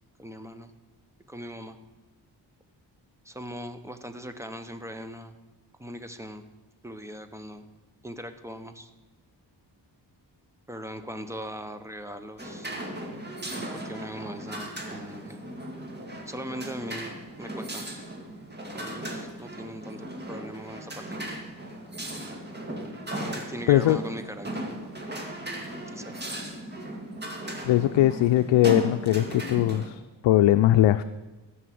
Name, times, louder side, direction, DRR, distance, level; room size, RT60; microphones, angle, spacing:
voice 1, 0.2-0.7 1.3-1.8 3.2-5.3 5.8-6.4 6.8-7.6 8.0-8.9 10.7-12.7 13.6-15.4 16.3-17.1 17.4-17.8 18.7-21.2 23.1-24.7 25.9-26.3, equal, 5° right, 8 dB, 0.9 m, -40 dB
sound 1, 12.4-29.9, right 1 dB, 25° right, 2.1 m, -37 dB
voice 2, 27.6-31.0, left 13 dB, 85° left, 9 dB, 0.5 m, -20 dB
14.5 x 6.1 x 7.7 m, 1.1 s
cardioid pair, 105°, 44 cm